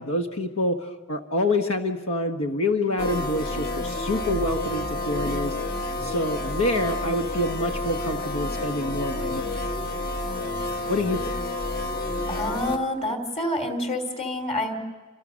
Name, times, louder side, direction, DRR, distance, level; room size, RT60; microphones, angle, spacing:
voice 1, 0.0-5.6 6.0-9.6 10.9-11.4, left 1 dB, 80° left, 5 dB, 1.4 m, -27 dB
sound 1, 3.0-12.8, left 2 dB, 45° left, 1.5 m, -29 dB
voice 2, 12.3-14.7, left 1 dB, 30° left, 5 dB, 3.1 m, -28 dB
29.0 x 26.5 x 6.4 m, 1.3 s
head